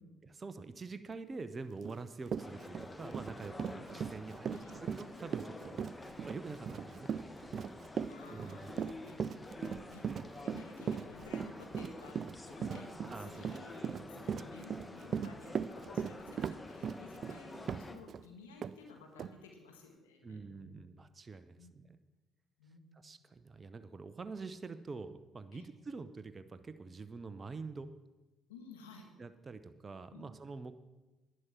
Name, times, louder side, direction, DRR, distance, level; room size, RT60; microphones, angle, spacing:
voice 1, 0.2-5.8 6.2-7.4 8.3-8.6 13.1-13.5 20.2-22.0 22.9-27.9 29.2-30.7, right 4 dB, 35° right, 11 dB, 0.8 m, -46 dB
Run, 1.8-2.0 2.3-18.2 18.6-18.7 19.2-19.3, right 7 dB, 55° right, 0.4 m, -38 dB
sound 1, 2.4-18.0, left 2 dB, 20° left, 1.4 m, -49 dB
voice 2, 8.1-12.2 12.5-12.9 13.2-20.9 21.6-21.9 22.6-23.1 25.5-25.7 28.5-29.1 30.1-30.3, left 4 dB, 85° left, 2 dB, 1.6 m, -55 dB
11.0 x 10.5 x 5.9 m, 1.1 s
hypercardioid pair, 50°, 0 cm